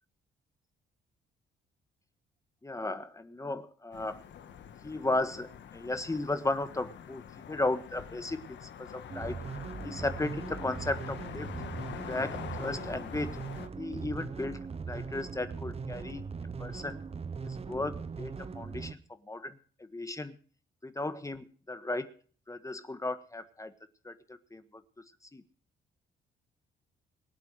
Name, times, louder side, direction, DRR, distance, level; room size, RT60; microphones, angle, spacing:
voice 1, 2.6-4.2 4.8-9.4 9.8-11.5 12.1-13.4 13.8-14.6 14.9-16.2 16.6-17.0 17.4-19.0 19.3-19.6 19.9-20.4 20.8-22.1 22.5-23.7 24.0-24.8 25.3-25.4, left 2 dB, 15° left, 10 dB, 1.5 m, -35 dB
sound 1, 3.9-13.7, left 8 dB, 65° left, 1.5 m, -45 dB
sound 2, 9.1-18.9, right 5 dB, 30° right, 1.0 m, -40 dB
24.0 x 8.2 x 4.9 m, 0.42 s
cardioid pair, 90°, 20 cm